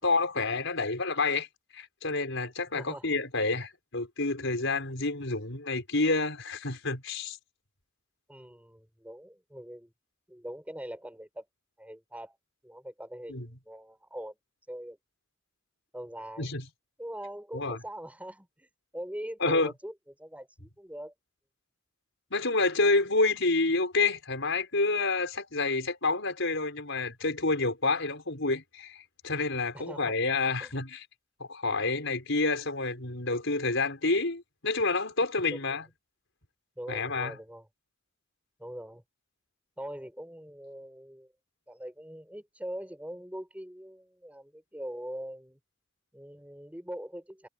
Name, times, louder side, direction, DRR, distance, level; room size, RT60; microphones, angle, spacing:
voice 1, 0.0-1.5 1.7-7.4 13.3-13.5 16.4-16.6 17.5-17.8 19.4-19.7 22.3-31.0 31.4-35.8 36.9-37.3, left 3 dB, 60° left, 6.1 m, -28 dB
voice 2, 2.7-3.1 8.3-9.9 10.3-11.5 11.8-12.4 12.6-14.3 14.7-15.0 15.9-16.5 17.0-21.1 29.7-30.2 30.6-30.8 35.5-35.8 36.8-37.7 38.6-39.0 39.8-41.3 41.7-45.6 46.1-47.5, equal, 5° right, 7.2 m, -42 dB
head